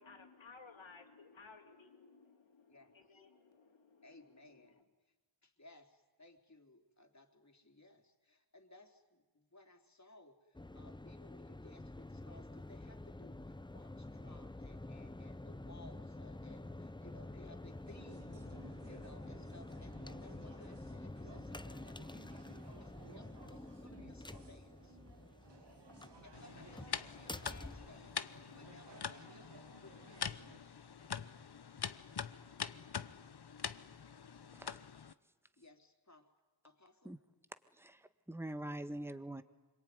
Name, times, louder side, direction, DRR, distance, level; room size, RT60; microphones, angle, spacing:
voice 1, 0.0-4.8, left 4 dB, 75° left, 4 dB, 3.7 m, -59 dB
voice 2, 4.0-5.1 5.4-25.0 26.2-30.4 31.0-31.2 35.6-36.3 36.6-37.1, left 2 dB, 35° left, 3 dB, 3.7 m, -61 dB
sound 1, 10.6-28.6, left 2 dB, 10° left, 0.8 m, -49 dB
sound 2, 17.9-30.6, right 4 dB, 60° right, 2.7 m, -59 dB
sound 3, 26.3-35.1, left 7 dB, 55° left, 1.1 m, -44 dB
voice 3, 37.7-39.4, right 1 dB, 5° right, 10 dB, 1.6 m, -44 dB
26.0 x 23.0 x 9.6 m, 1.2 s
cardioid pair, 55°, 46 cm